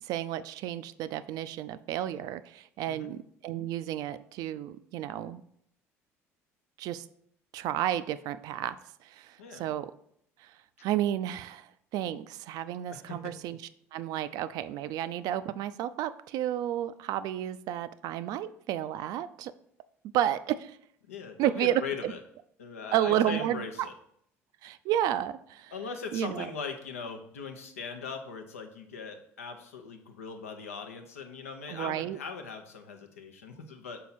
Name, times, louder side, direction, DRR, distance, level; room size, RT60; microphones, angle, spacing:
voice 1, 0.0-5.4 6.8-7.1 7.5-8.8 9.0-9.9 10.4-10.5 10.8-13.6 13.9-19.5 20.1-20.8 21.4-22.1 22.9-23.9 24.6-25.7 26.1-26.5 31.7-32.2, right 11 dB, 60° right, 13 dB, 0.3 m, -31 dB
voice 2, 12.9-13.3 21.1-22.2 22.6-23.9 25.7-34.0, left 5 dB, 85° left, 5 dB, 0.7 m, -40 dB
5.6 x 4.1 x 4.2 m, 0.69 s
hypercardioid pair, 60°, 8 cm